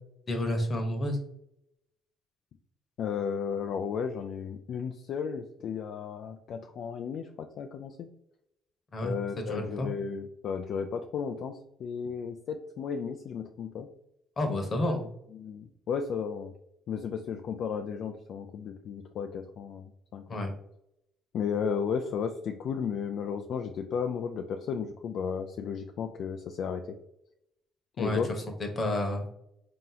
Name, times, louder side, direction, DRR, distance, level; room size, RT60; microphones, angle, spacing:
voice 1, 0.3-1.2 8.9-9.1 9.5-9.9 14.4-15.0 20.3-20.5 28.0-28.2 28.6-29.3, left 1 dB, 35° left, 4 dB, 1.0 m, -30 dB
voice 2, 3.0-8.1 9.0-13.9 15.3-16.5 16.9-20.4 21.3-27.0 28.0-28.3, left 6 dB, 60° left, 5 dB, 0.3 m, -34 dB
3.7 x 2.8 x 3.9 m, 0.78 s
cardioid pair, 90°, 0 cm